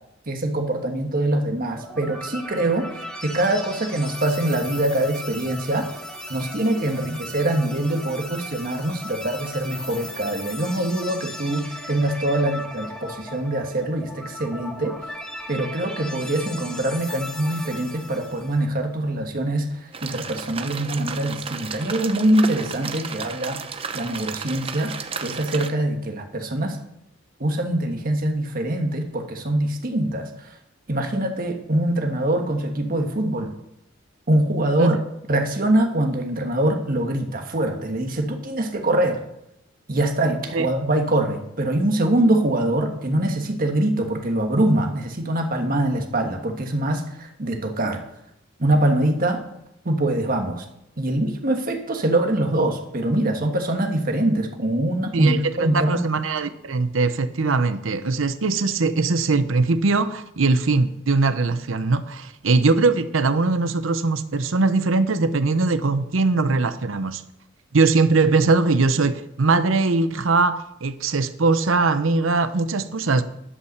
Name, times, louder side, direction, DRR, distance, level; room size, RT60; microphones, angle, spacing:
voice 1, 0.3-2.9 3.2-5.9 6.3-15.0 15.5-26.8 27.4-30.6 30.9-33.5 34.3-35.0 35.3-39.2 39.9-48.0 48.6-49.4 49.8-50.6 51.0-56.0, right 1 dB, 45° right, 4 dB, 1.5 m, -23 dB
sound 1, 1.8-18.6, equal, 5° left, 1.3 m, -37 dB
sound 2, 19.9-25.7, right 5 dB, 30° right, 0.6 m, -33 dB
voice 2, 55.1-67.2 67.7-73.2, right 3 dB, 90° right, 12 dB, 0.7 m, -21 dB
11.0 x 5.7 x 6.7 m, 0.81 s
head